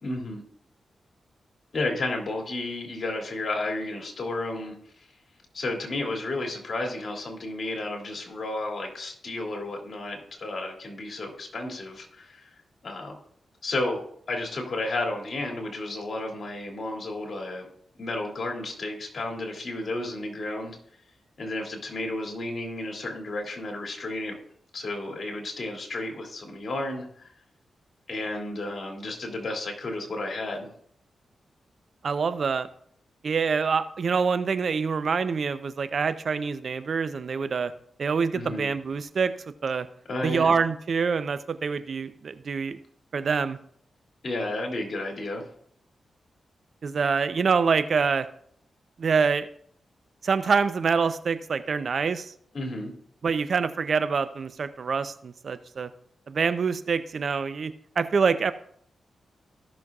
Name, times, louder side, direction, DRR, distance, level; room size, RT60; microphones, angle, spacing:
voice 1, 0.0-0.4 1.7-4.7 5.5-12.4 12.8-13.2 13.6-17.7 18.0-20.8 21.4-24.4 24.7-27.3 28.1-30.7 38.3-38.7 40.1-40.6 44.2-45.5 52.5-52.9, left 2 dB, 60° left, 1 dB, 2.7 m, -32 dB
voice 2, 32.0-32.7 33.2-37.7 38.0-39.3 39.6-39.9 40.2-42.8 43.1-43.6 46.8-48.3 49.0-49.5 50.2-52.3 53.2-55.9 56.3-58.5, right 5 dB, 65° right, 12 dB, 0.6 m, -26 dB
16.0 x 6.3 x 2.4 m, 0.63 s
cardioid pair, 55°, 0 cm